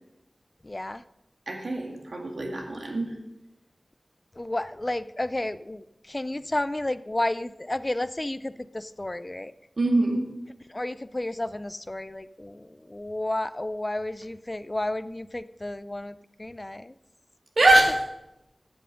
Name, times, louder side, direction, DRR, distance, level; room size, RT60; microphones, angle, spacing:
voice 1, 0.6-1.0 4.4-9.5 10.7-16.9, left 1 dB, 30° left, 15 dB, 0.5 m, -32 dB
voice 2, 1.5-3.1 9.8-10.3 17.6-18.0, right 1 dB, 80° right, 2 dB, 2.0 m, -23 dB
14.0 x 7.9 x 5.2 m, 0.90 s
wide cardioid pair, 50°, 0 cm